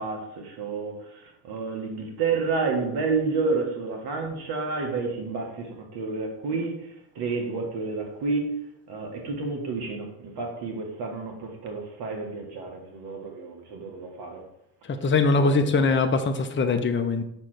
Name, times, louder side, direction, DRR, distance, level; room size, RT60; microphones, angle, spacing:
voice 1, 0.0-8.5 8.9-14.4 15.3-15.7, right 4 dB, 70° right, 1.6 m, -30 dB
voice 2, 14.9-17.2, left 3 dB, 30° left, 0.8 m, -22 dB
6.1 x 3.4 x 6.0 m
supercardioid pair, 60°, 41 cm